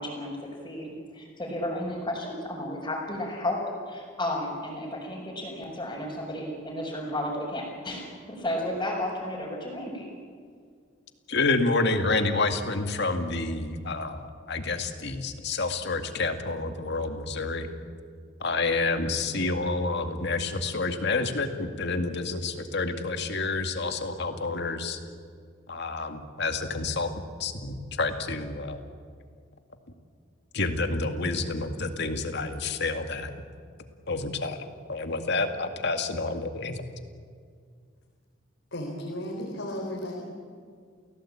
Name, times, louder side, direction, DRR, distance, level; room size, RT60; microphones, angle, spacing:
voice 1, 0.0-3.6 3.9-10.1, left 1 dB, 20° left, -8 dB, 5.3 m, -33 dB
voice 2, 11.3-17.7 18.4-25.0 25.7-27.1 27.4-28.8 30.5-33.3 34.1-36.8, left 3 dB, 60° left, 7 dB, 2.1 m, -29 dB
voice 3, 38.7-40.2, left 1 dB, 80° left, -1 dB, 4.0 m, -34 dB
29.5 x 17.0 x 8.7 m, 2.1 s
head